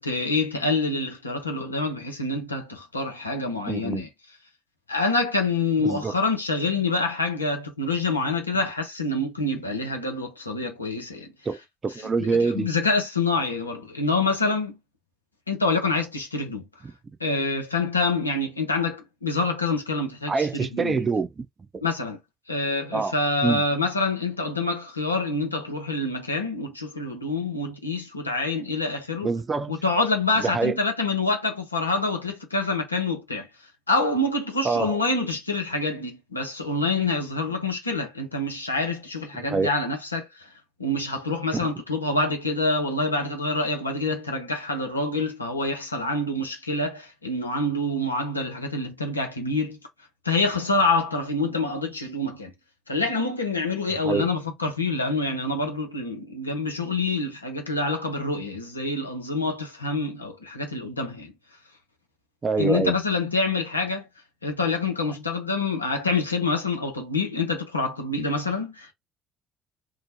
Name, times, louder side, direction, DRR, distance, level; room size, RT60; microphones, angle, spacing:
voice 1, 0.0-4.1 4.9-11.3 12.2-14.7 15.5-16.6 17.2-21.0 21.8-22.2 22.5-29.3 29.7-33.5 33.9-40.5 40.8-49.8 50.2-52.5 52.9-61.3 62.6-64.0 64.4-68.9, left 3 dB, 90° left, 0.5 m, -26 dB
voice 2, 3.7-4.0 5.8-6.1 11.5-12.7 20.3-21.4 21.7-21.8 22.9-23.1 23.4-23.6 29.2-29.8 30.4-30.8 34.6-35.0 39.5-39.7 41.5-41.7 54.0-54.3 62.4-62.9, right 4 dB, 30° right, 0.5 m, -25 dB
2.8 x 2.1 x 2.7 m
figure-of-eight pair, 50°, 0 cm